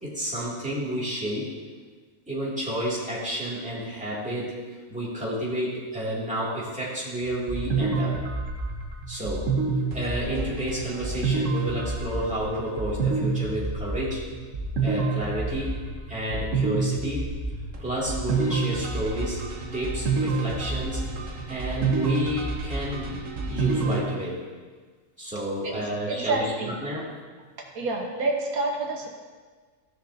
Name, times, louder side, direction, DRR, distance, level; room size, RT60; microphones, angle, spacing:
voice 1, 0.0-1.5 2.3-4.6 4.9-8.2 9.1-9.5 9.9-14.2 14.8-15.7 16.1-17.3 17.8-19.4 19.7-21.0 21.5-24.4 25.2-27.0, equal, 5° right, -8 dB, 2.4 m, -30 dB
sound 1, 7.2-24.0, right 3 dB, 65° right, 1.4 m, -28 dB
voice 2, 25.6-26.8 27.7-29.1, right 3 dB, 85° right, -1 dB, 1.7 m, -28 dB
15.5 x 6.4 x 2.7 m, 1.5 s
omnidirectional pair, 1.5 m